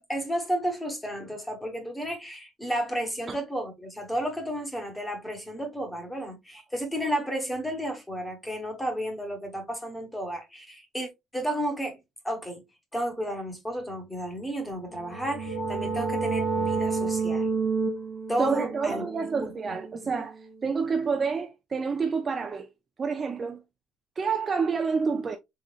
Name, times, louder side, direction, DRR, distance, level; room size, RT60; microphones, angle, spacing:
voice 1, 0.1-12.0 12.2-12.6 12.9-17.5 18.3-19.0 19.3-19.8, equal, 5° left, 1.0 m, -32 dB
sound 1, 14.8-20.4, right 4 dB, 80° left, 1.3 m, -30 dB
voice 2, 18.4-22.7 23.0-23.6 24.2-25.4, right 5 dB, 25° right, 0.4 m, -28 dB
4.1 x 3.7 x 2.3 m
cardioid pair, 165°, 0 cm